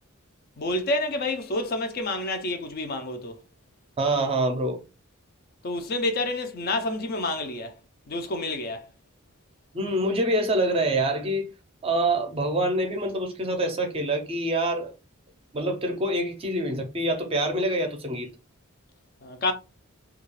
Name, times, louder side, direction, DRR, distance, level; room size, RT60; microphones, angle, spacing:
voice 1, 0.6-3.4 5.6-7.7 8.1-8.9 19.2-19.5, left 2 dB, 45° left, 0.5 m, -28 dB
voice 2, 4.0-4.8 9.7-11.5 11.8-14.9 15.5-18.3, right 1 dB, 25° right, 0.5 m, -26 dB
2.3 x 2.3 x 3.1 m
head